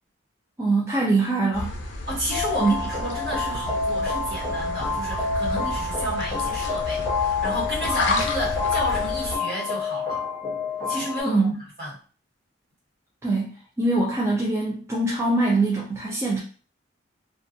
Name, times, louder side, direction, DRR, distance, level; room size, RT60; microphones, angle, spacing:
voice 1, 0.6-1.7 2.6-2.7 11.2-11.5 13.2-16.4, right 3 dB, 15° right, -4 dB, 0.4 m, -23 dB
sound 1, 1.5-9.4, left 2 dB, 60° left, 0.5 m, -31 dB
voice 2, 2.1-10.2 10.9-11.5 11.8-11.9, equal, 55° right, -6 dB, 1.4 m, -31 dB
sound 2, 2.3-11.2, left 4 dB, 10° left, 1.0 m, -28 dB
2.5 x 2.3 x 2.5 m, 0.39 s
head